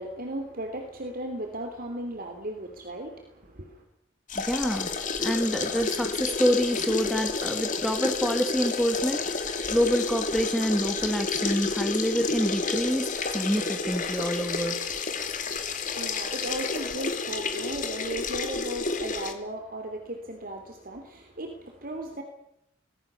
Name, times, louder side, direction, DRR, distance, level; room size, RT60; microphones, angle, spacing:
voice 1, 0.0-3.8 15.1-22.2, right 1 dB, 50° right, 4 dB, 3.2 m, -36 dB
sound 1, 4.3-19.3, left 4 dB, 40° left, 2.8 m, -30 dB
voice 2, 4.4-14.8, equal, ahead, 5 dB, 2.1 m, -27 dB
26.0 x 20.0 x 7.0 m, 0.78 s
head